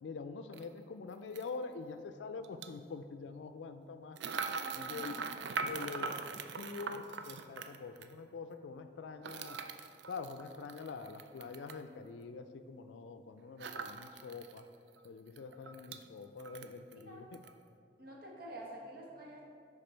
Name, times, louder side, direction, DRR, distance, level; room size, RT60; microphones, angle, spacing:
voice 1, 0.0-5.1 5.7-6.1 6.6-9.6 10.1-14.6 15.0-17.4, left 4 dB, 90° left, 9 dB, 0.4 m, -45 dB
sound 1, 0.5-0.6 1.3-1.5 2.4-2.7 4.2-8.1 9.2-11.8 13.6-14.6 15.0-15.1 15.4-16.0 16.4-17.0 17.3-17.5, right 5 dB, 75° right, 0.4 m, -41 dB
voice 2, 4.6-5.4 17.1-17.3 18.0-19.5, right 1 dB, 55° right, -2 dB, 1.4 m, -49 dB
10.0 x 3.6 x 4.4 m, 2.2 s
head